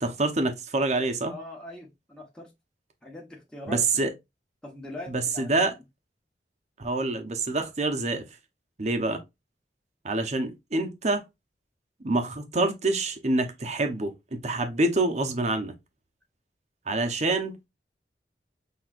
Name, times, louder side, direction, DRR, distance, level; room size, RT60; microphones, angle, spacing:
voice 1, 0.0-1.3 3.7-4.1 5.1-5.7 6.8-8.2 8.8-9.2 10.0-11.2 12.0-15.7 16.9-17.7, right 2 dB, 40° right, 0.9 m, -26 dB
voice 2, 1.3-2.5 3.0-4.1 4.6-5.8, left 1 dB, 5° left, 1.1 m, -42 dB
6.0 x 3.0 x 2.5 m
head